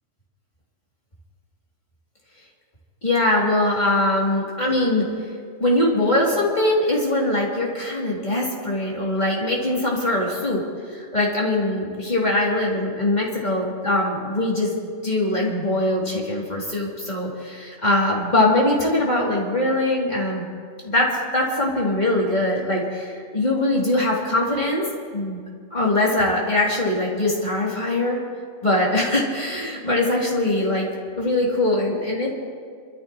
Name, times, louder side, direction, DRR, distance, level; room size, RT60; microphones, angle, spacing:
voice 1, 3.0-5.1 5.6-10.6 10.9-14.7 15.0-20.4 20.8-24.8 25.1-25.4 25.7-28.2 28.6-30.9 31.2-32.3, left 1 dB, 35° left, -4 dB, 2.9 m, -22 dB
28.0 x 13.0 x 3.0 m, 2.1 s
omnidirectional pair, 1.3 m